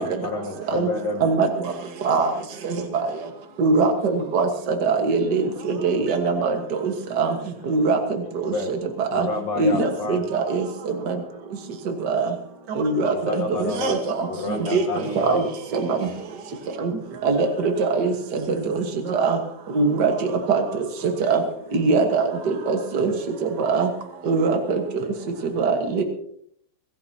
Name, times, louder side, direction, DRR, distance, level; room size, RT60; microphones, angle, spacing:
voice 1, 0.0-1.3 8.5-8.7 9.1-10.2 13.1-14.0 14.3-15.4, left 2 dB, 60° left, 1 dB, 2.2 m, -29 dB
voice 2, 3.6-4.5 4.8-5.5 5.8-6.6 6.8-7.3 7.7-8.0 9.1-9.3 9.6-10.6 11.1-11.2 12.0-12.3 12.8-14.3 14.7-14.8 15.1-15.4 15.7-16.0 16.8-16.9 17.2-18.1 18.5-18.7 19.1-19.4 19.7-20.1 20.5-20.6 21.2-21.4 21.7-23.1 23.4-23.9 24.3-24.8 25.6-26.0, right 4 dB, 70° right, 5 dB, 1.0 m, -21 dB
voice 3, 4.9-8.1 11.3-11.4 14.4-15.2 16.8-17.7 18.4-18.7 25.0-25.5, right 1 dB, 45° right, -1 dB, 8.1 m, -47 dB
23.0 x 14.5 x 2.8 m, 0.65 s
omnidirectional pair, 4.2 m